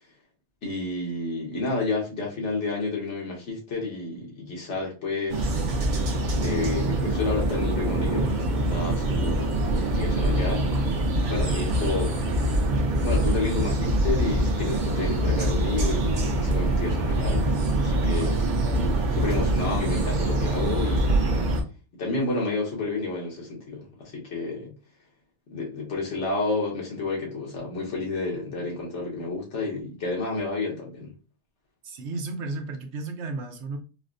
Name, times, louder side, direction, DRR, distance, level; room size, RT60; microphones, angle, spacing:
voice 1, 0.6-5.5 6.4-11.0 11.3-12.1 13.0-18.5 19.1-21.4 22.0-24.7 25.5-31.1, left 3 dB, 75° left, 1.5 m, -30 dB
sound 1, 5.3-21.6, right 1 dB, 50° right, 0.7 m, -24 dB
voice 2, 31.8-33.8, right 3 dB, 75° right, 1.0 m, -33 dB
4.1 x 2.1 x 2.5 m
omnidirectional pair, 1.2 m